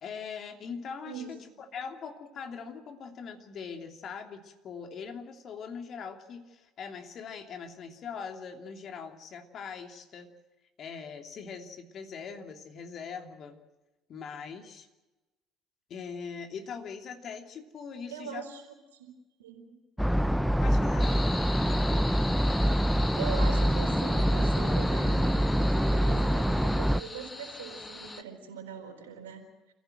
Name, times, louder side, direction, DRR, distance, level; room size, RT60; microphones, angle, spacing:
voice 1, 0.0-10.3 10.8-13.6 14.1-14.9 15.9-18.5 20.6-21.2, left 6 dB, 50° left, 4 dB, 2.9 m, -41 dB
voice 2, 18.1-18.6 18.9-19.1 19.4-19.8 23.2-29.5, right 6 dB, 80° right, 4 dB, 4.3 m, -41 dB
sound 1, 20.0-27.0, equal, ahead, 0.7 m, -25 dB
sound 2, 21.0-28.2, left 3 dB, 25° left, 2.1 m, -40 dB
28.5 x 15.5 x 7.8 m, 1.1 s
figure-of-eight pair, 60°, 0 cm